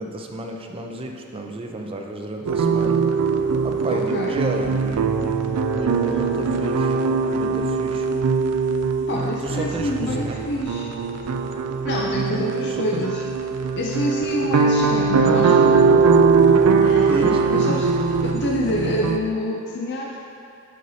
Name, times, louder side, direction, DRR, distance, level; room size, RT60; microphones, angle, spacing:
voice 1, 0.0-3.0 3.6-5.1 5.7-7.0 7.3-8.1 9.4-10.4 12.2-13.1 17.1-17.7 19.0-19.1, right 1 dB, 25° right, 3 dB, 0.4 m, -31 dB
sound 1, 2.5-19.2, right 5 dB, 90° right, 0.4 m, -20 dB
voice 2, 3.9-4.4 9.1-10.9 11.8-13.2 13.8-15.7 16.8-17.9 18.2-20.2, left 1 dB, 50° left, -2 dB, 0.5 m, -27 dB
9.4 x 5.5 x 2.7 m, 2.7 s
head